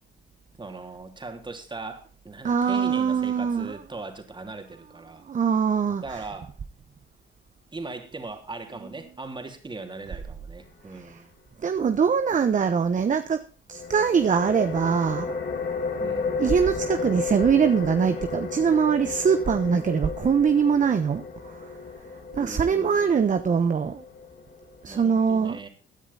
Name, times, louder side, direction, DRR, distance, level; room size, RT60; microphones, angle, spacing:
voice 1, 0.6-5.2 6.0-6.5 7.7-11.3 16.0-16.4 22.3-23.1 24.9-25.7, right 3 dB, 25° right, 5 dB, 3.1 m, -39 dB
voice 2, 2.4-3.8 5.3-6.2 11.0-11.2 11.6-15.3 16.4-21.7 22.3-24.0 24.8-25.6, right 6 dB, 40° right, 9 dB, 1.1 m, -23 dB
sound 1, 13.7-25.1, left 4 dB, 50° left, 2.7 m, -33 dB
16.5 x 10.0 x 4.1 m, 0.37 s
cardioid pair, 90°, 20 cm